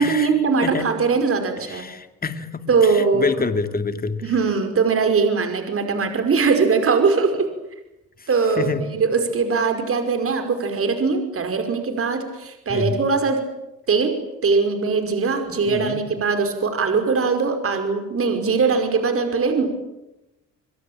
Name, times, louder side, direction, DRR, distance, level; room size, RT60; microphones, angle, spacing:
voice 1, 0.0-1.9 2.7-3.5 4.2-7.5 8.3-13.4 13.9-19.8, right 4 dB, 50° right, 6 dB, 5.3 m, -21 dB
voice 2, 1.7-4.2 8.6-8.8 12.7-13.0 15.7-16.0, left 4 dB, 30° left, 9 dB, 2.5 m, -26 dB
29.0 x 22.5 x 9.0 m, 0.94 s
cardioid pair, 90°, 30 cm